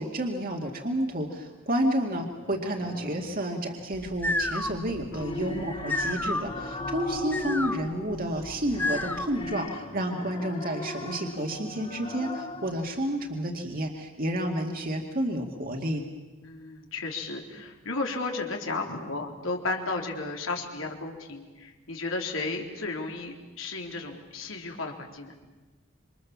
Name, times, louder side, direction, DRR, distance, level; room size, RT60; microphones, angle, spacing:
voice 1, 0.0-16.0, right 1 dB, 45° right, 2 dB, 2.2 m, -30 dB
sound 1, 2.4-3.3 4.9-13.0, left 1 dB, 30° left, 2.8 m, -38 dB
sound 2, 3.9-9.5, left 2 dB, 10° left, 1.0 m, -32 dB
voice 2, 5.1-5.5 16.4-25.3, left 3 dB, 90° left, 2 dB, 3.9 m, -34 dB
28.0 x 25.5 x 7.3 m, 1.2 s
head